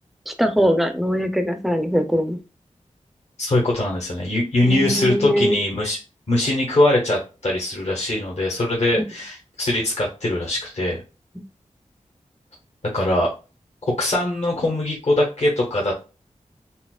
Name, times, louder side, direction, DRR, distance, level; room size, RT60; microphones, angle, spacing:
voice 1, 0.3-2.4 4.6-5.6 9.0-9.1, equal, ahead, 7 dB, 0.5 m, -21 dB
voice 2, 3.4-6.0 6.3-11.0 12.9-13.3 14.0-15.9, left 1 dB, 60° left, -3 dB, 1.1 m, -22 dB
4.2 x 2.0 x 2.3 m, 0.31 s
cardioid pair, 50°, 13 cm